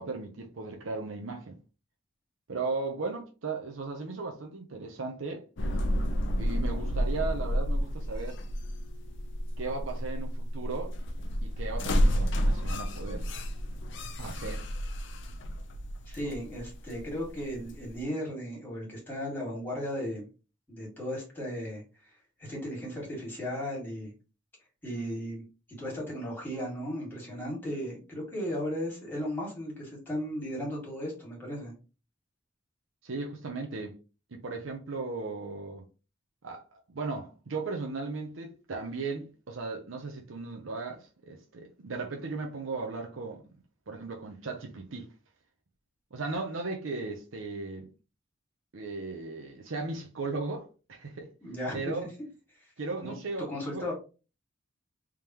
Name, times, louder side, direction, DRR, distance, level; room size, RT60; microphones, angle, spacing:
voice 1, 0.0-1.6 2.5-5.4 6.4-8.4 9.6-10.9 11.4-13.2 14.2-14.6 33.0-33.9 34.3-35.8 36.4-43.4 43.9-45.1 46.1-47.9 48.7-51.3 51.7-52.1 52.8-53.8, right 3 dB, 75° right, 0.7 m, -36 dB
sound 1, 5.6-18.0, equal, 65° left, 0.6 m, -31 dB
voice 2, 16.1-20.3 20.7-24.1 24.8-25.4 25.8-31.7 51.4-51.8 53.0-53.1 53.5-53.9, equal, 10° left, 2.1 m, -36 dB
3.6 x 3.4 x 2.9 m
head